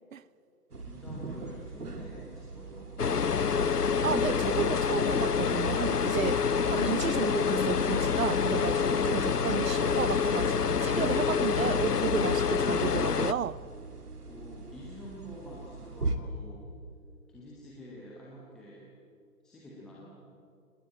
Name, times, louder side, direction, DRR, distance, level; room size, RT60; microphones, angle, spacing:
sound 1, 0.7-16.2, right 3 dB, 75° right, 2.5 m, -42 dB
voice 1, 0.8-2.9 14.3-16.7 17.3-18.8 19.4-20.1, equal, ahead, 0.6 m, -47 dB
sound 2, 3.0-13.3, left 6 dB, 85° left, 0.8 m, -27 dB
voice 2, 4.0-6.4 6.7-13.6, right 7 dB, 60° right, 0.8 m, -33 dB
27.0 x 19.5 x 8.8 m
figure-of-eight pair, 135°, 46 cm